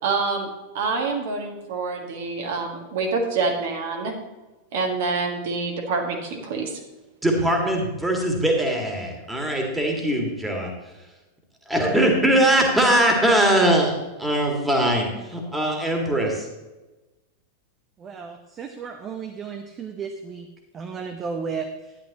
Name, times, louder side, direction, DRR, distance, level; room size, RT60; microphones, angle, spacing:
voice 1, 0.0-0.5 0.7-4.1 4.7-6.7, right 4 dB, 55° right, 1 dB, 1.8 m, -26 dB
voice 2, 7.2-10.7 11.7-13.9 14.2-16.5, right 1 dB, 5° right, 1 dB, 2.1 m, -21 dB
voice 3, 18.0-20.5 20.7-22.0, right 5 dB, 25° right, 5 dB, 0.8 m, -34 dB
11.5 x 10.5 x 3.0 m, 1.1 s
figure-of-eight pair, 90°, 0 cm